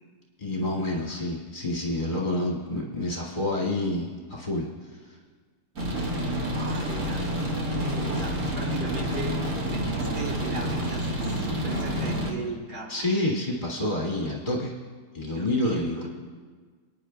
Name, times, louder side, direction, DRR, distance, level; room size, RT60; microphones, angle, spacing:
voice 1, 0.4-4.7 12.9-14.7 15.1-16.1, left 1 dB, 30° left, -4 dB, 2.0 m, -28 dB
sound 1, 5.8-12.3, equal, 55° right, 1.9 m, -28 dB
voice 2, 6.5-9.4 9.7-13.1 15.2-16.1, right 2 dB, 85° right, -1 dB, 2.3 m, -37 dB
29.5 x 9.9 x 2.2 m, 1.5 s
omnidirectional pair, 1.7 m